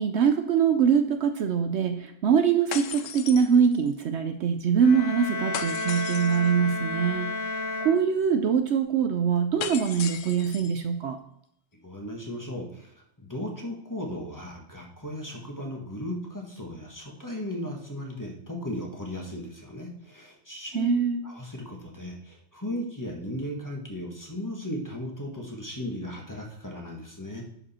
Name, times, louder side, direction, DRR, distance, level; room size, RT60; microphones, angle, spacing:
voice 1, 0.0-7.3 7.8-11.2 20.7-21.2, right 7 dB, 65° right, 7 dB, 0.8 m, -23 dB
sound 1, 2.7-4.0 5.5-6.5 9.6-10.8, left 8 dB, 80° left, 1.0 m, -36 dB
sound 2, 4.8-8.6, left 2 dB, 55° left, 1.2 m, -32 dB
voice 2, 11.8-20.9 21.2-27.4, left 1 dB, 15° left, -1 dB, 1.5 m, -36 dB
11.0 x 5.1 x 4.3 m, 0.76 s
omnidirectional pair, 1.3 m